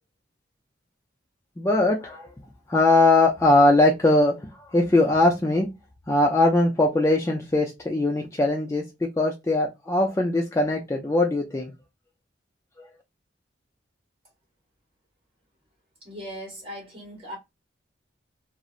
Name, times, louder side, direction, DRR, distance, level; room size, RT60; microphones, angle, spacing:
voice 1, 1.6-2.3 2.7-5.7 6.1-11.7 12.8-12.9, left 2 dB, 15° left, 0.3 m, -21 dB
voice 2, 16.0-17.4, equal, 30° right, 1.3 m, -38 dB
2.7 x 2.0 x 2.4 m
head